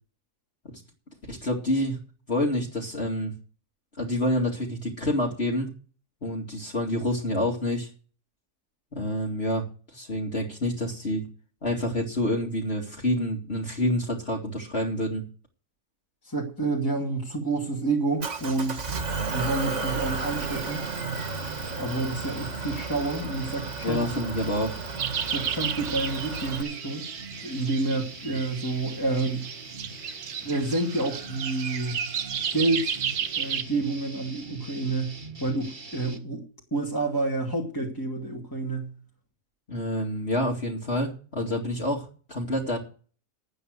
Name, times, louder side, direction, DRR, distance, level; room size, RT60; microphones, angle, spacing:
voice 1, 1.3-2.0 2.3-3.3 4.0-5.7 6.2-7.9 8.9-11.3 11.6-15.2 23.8-24.8 39.7-42.8, left 1 dB, 40° left, 2.7 m, -28 dB
voice 2, 16.2-20.8 21.8-24.0 25.2-27.1 27.4-29.5 30.4-32.0 32.5-33.0 33.4-36.4 36.7-38.9, right 2 dB, 15° left, 2.4 m, -29 dB
Motor vehicle (road) / Engine, 18.2-26.6, right 4 dB, 50° right, 1.8 m, -33 dB
sound 1, 20.1-36.2, right 3 dB, 30° right, 1.7 m, -43 dB
sound 2, 25.0-33.6, right 8 dB, 70° right, 1.5 m, -33 dB
12.0 x 9.1 x 6.5 m
omnidirectional pair, 1.7 m